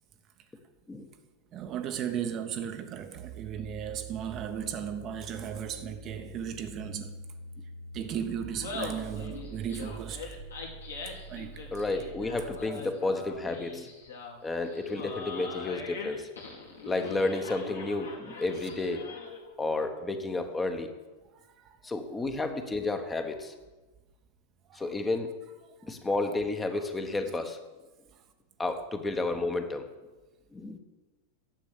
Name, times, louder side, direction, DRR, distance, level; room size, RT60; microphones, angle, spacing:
voice 1, 1.5-7.2 7.9-10.3 11.3-11.7 21.3-21.8 24.7-24.8 25.8-25.9 26.7-26.8, right 8 dB, 35° right, 0.9 m, -36 dB
sound 1, 3.1-12.7, right 2 dB, 55° right, 1.4 m, -46 dB
Laughter, 8.4-19.5, left 3 dB, 80° left, 2.5 m, -42 dB
voice 2, 11.7-13.9 14.4-16.3 16.8-19.1 19.6-20.9 21.8-23.5 24.7-25.4 25.8-27.6 28.6-29.9 30.5-30.8, left 2 dB, 10° left, 1.1 m, -31 dB
10.5 x 7.4 x 8.2 m
figure-of-eight pair, 90°, 0 cm